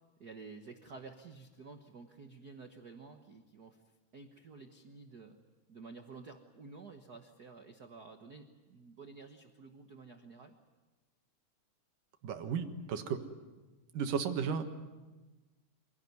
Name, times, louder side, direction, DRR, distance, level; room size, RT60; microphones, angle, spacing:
voice 1, 0.2-3.8 4.1-5.4 5.7-10.5, right 4 dB, 60° right, 5 dB, 1.0 m, -51 dB
voice 2, 12.2-13.2 13.9-14.6, right 6 dB, 85° right, 6 dB, 3.1 m, -34 dB
25.5 x 17.5 x 9.5 m, 1.2 s
omnidirectional pair, 3.7 m